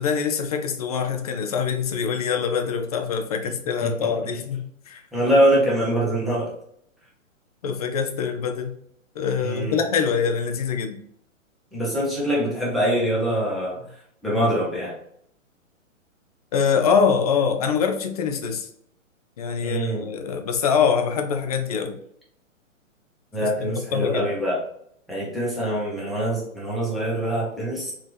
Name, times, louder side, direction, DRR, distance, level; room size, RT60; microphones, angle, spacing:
voice 1, 0.0-5.0 7.6-8.7 9.2-11.0 16.5-18.7 19.4-22.0 23.9-24.3, left 6 dB, 30° left, 5 dB, 0.4 m, -24 dB
voice 2, 5.1-6.5 9.4-9.8 11.7-13.8 14.2-14.9 19.6-20.1 23.3-24.6 25.1-27.9, right 1 dB, ahead, -7 dB, 1.1 m, -23 dB
4.3 x 2.8 x 3.2 m, 0.70 s
hypercardioid pair, 130°, 40 cm